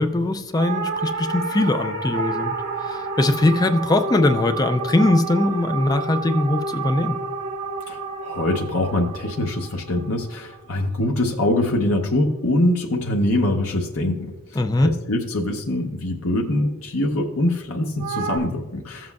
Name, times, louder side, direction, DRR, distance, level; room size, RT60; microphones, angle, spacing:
voice 1, 0.0-7.2 14.5-14.9, left 2 dB, 15° left, 8 dB, 0.4 m, -21 dB
sound 1, 0.5-11.0 18.0-18.4, right 4 dB, 80° right, 1.3 m, -30 dB
voice 2, 7.9-19.1, left 1 dB, 70° left, 1 dB, 0.8 m, -23 dB
15.0 x 7.5 x 2.3 m, 1.1 s
head